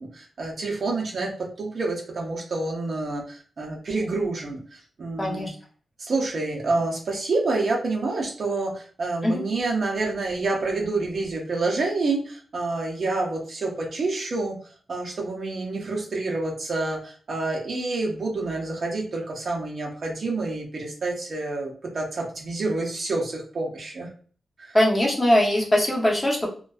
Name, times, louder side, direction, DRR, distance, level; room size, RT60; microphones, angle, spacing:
voice 1, 0.0-5.5 6.0-14.6 14.9-24.1 24.6-24.8, right 3 dB, 45° right, -1 dB, 0.5 m, -28 dB
voice 2, 5.2-5.5 9.2-9.4 24.7-26.5, left 1 dB, 10° left, -2 dB, 0.6 m, -21 dB
2.5 x 2.2 x 2.3 m, 0.42 s
wide cardioid pair, 165°, 0 cm